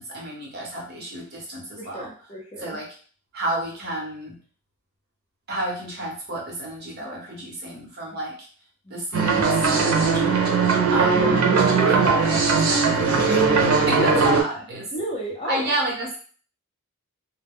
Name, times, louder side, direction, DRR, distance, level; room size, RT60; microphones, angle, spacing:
voice 1, 0.0-2.1 2.6-2.9 3.3-4.4 5.5-8.5 8.9-10.6 10.9-14.9 15.4-16.2, right 1 dB, 45° right, -2 dB, 0.8 m, -31 dB
voice 2, 1.8-2.8 8.8-9.1 13.9-14.4 14.9-15.8, equal, 25° left, -3 dB, 0.6 m, -32 dB
sound 1, 9.1-14.4, right 4 dB, 80° right, 0.5 m, -19 dB
2.2 x 2.1 x 3.5 m, 0.42 s
head